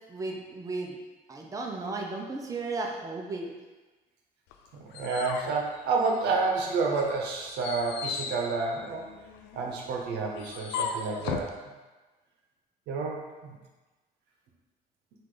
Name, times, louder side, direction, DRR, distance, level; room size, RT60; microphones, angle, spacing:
voice 1, 0.1-1.0 1.3-3.5, right 3 dB, 20° right, 0 dB, 0.6 m, -34 dB
sound 1, 4.5-6.5 6.9-11.6, left 7 dB, 90° left, 0.4 m, -37 dB
voice 2, 4.7-9.0 9.5-11.5 12.9-13.5, right 4 dB, 85° right, 0 dB, 0.8 m, -29 dB
4.8 x 2.5 x 3.8 m, 1.2 s
cardioid pair, 110°, 17 cm